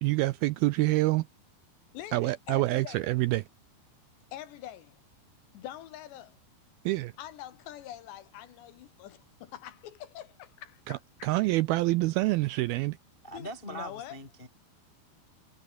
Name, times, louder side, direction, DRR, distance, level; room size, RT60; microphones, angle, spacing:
voice 1, 0.0-1.3 2.1-3.5 6.9-7.1 10.9-13.0, right 19 dB, 90° right, 2.2 m, -27 dB
voice 2, 1.9-3.0 4.3-5.0 5.5-6.4 7.2-11.3 13.3-14.2, left 12 dB, 80° left, 3.7 m, -44 dB
voice 3, 13.2-14.5, right 1 dB, 20° left, 1.9 m, -41 dB
omnidirectional pair, 5.0 m